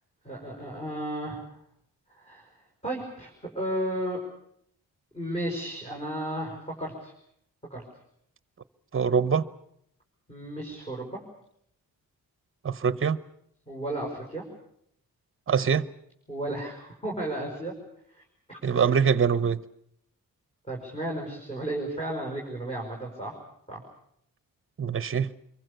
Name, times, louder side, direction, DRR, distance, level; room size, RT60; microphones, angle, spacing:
voice 1, 0.2-1.4 2.2-2.5 2.8-4.2 5.1-7.1 7.7-7.8 10.3-11.2 13.7-14.4 16.3-17.7 18.1-18.2 18.5-18.8 20.7-23.4 23.7-23.8, right 1 dB, 15° left, 5.5 m, -33 dB
voice 2, 8.9-9.4 12.6-13.2 15.5-15.8 18.6-19.6 24.8-25.3, right 6 dB, 35° right, 0.9 m, -23 dB
26.5 x 23.5 x 6.8 m
wide cardioid pair, 135°, 35 cm